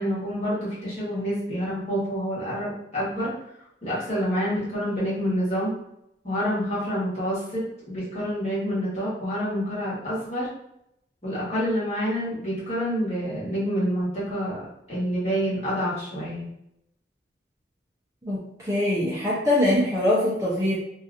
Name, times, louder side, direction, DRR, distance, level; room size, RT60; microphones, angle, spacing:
voice 1, 0.0-3.3 3.8-5.7 6.2-10.5 11.2-14.6 14.9-16.5, equal, 35° left, -9 dB, 1.3 m, -27 dB
voice 2, 18.3-20.7, left 1 dB, 15° right, -7 dB, 0.5 m, -23 dB
2.8 x 2.4 x 2.5 m, 0.79 s
head